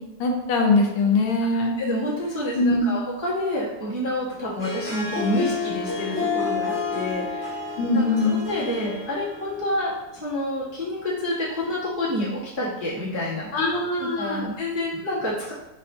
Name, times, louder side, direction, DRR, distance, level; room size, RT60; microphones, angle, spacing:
voice 1, 0.2-1.7 2.5-3.0 7.8-8.4 13.5-14.4, left 3 dB, 80° left, 2 dB, 1.5 m, -22 dB
voice 2, 1.5-13.7 14.0-15.5, left 1 dB, 30° right, -11 dB, 0.5 m, -28 dB
Harp, 4.5-9.9, left 4 dB, 15° left, 0.8 m, -30 dB
5.5 x 2.6 x 2.3 m, 0.99 s
omnidirectional pair, 2.4 m